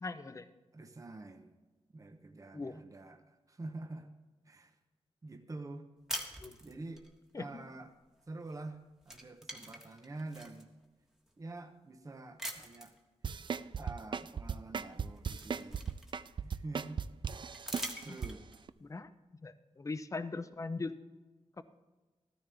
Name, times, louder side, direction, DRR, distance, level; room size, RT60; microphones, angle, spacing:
voice 1, 0.0-0.5 2.5-2.8 6.4-6.6 7.3-7.5 18.8-19.1 19.4-20.9 21.6-21.7, left 3 dB, 30° left, 12 dB, 0.7 m, -39 dB
voice 2, 0.7-1.6 1.9-4.1 4.4-4.8 5.2-5.9 6.6-7.1 7.4-8.0 8.3-10.7 11.4-13.0 13.8-15.9 16.4-17.0 17.6-18.5, right 2 dB, 30° right, 6 dB, 0.9 m, -47 dB
sound 1, 6.1-7.1 8.5-8.7 9.0-10.6 11.3-11.4 12.4-13.0 14.4-14.5 14.9-16.5 17.5-18.6, equal, 5° right, 1.5 m, -44 dB
sound 2, 13.2-18.3 18.7-18.8, right 6 dB, 45° right, 0.4 m, -37 dB
14.0 x 13.5 x 3.4 m, 1.2 s
wide cardioid pair, 105°, 11 cm